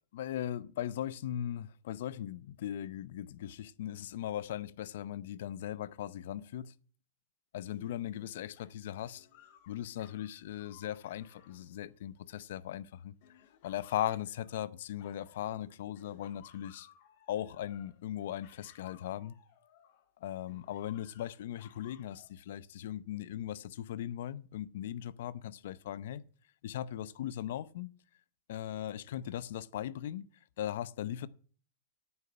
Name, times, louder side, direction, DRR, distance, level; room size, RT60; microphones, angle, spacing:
voice 1, 0.1-6.7 7.5-9.3 9.7-16.9 17.3-19.3 20.2-26.2 26.6-27.9 28.5-30.3 30.6-31.3, left 11 dB, 70° left, 0.7 m, -38 dB
sound 1, 7.6-12.6 13.2-15.7 15.9-20.1 20.5-22.3, left 10 dB, 55° left, 2.2 m, -61 dB
9.0 x 6.9 x 8.7 m
supercardioid pair, 155°, 0 cm